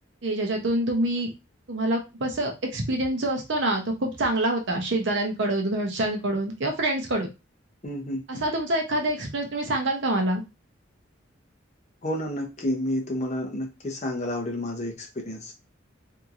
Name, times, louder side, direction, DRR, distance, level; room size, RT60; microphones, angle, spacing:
voice 1, 0.2-1.3 1.7-7.3 8.3-10.4, right 1 dB, 65° right, 2 dB, 0.7 m, -26 dB
voice 2, 7.8-8.4 12.0-15.5, left 1 dB, 35° left, 2 dB, 0.7 m, -30 dB
2.9 x 2.6 x 2.4 m, 0.26 s
head